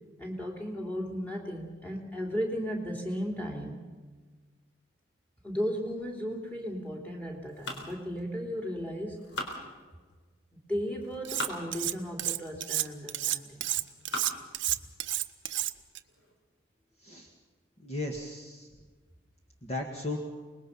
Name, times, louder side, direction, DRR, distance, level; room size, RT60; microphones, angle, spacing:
voice 1, 0.2-3.8 5.4-9.3 10.5-13.7, equal, 10° left, 0 dB, 3.1 m, -35 dB
sound 1, 7.5-8.7 9.1-10.2 10.9-11.6 12.3-12.4 13.1-13.4 13.9-14.5 15.1-15.2 15.5-15.6 16.0-16.4, left 2 dB, 70° left, 4.1 m, -40 dB
Cutlery silverware, 11.2-11.9 12.2-16.0, right 15 dB, 70° right, 0.7 m, -30 dB
voice 2, 17.8-18.7 19.6-20.2, left 2 dB, 30° left, 1 dB, 1.8 m, -35 dB
25.5 x 21.0 x 5.7 m, 1.4 s
head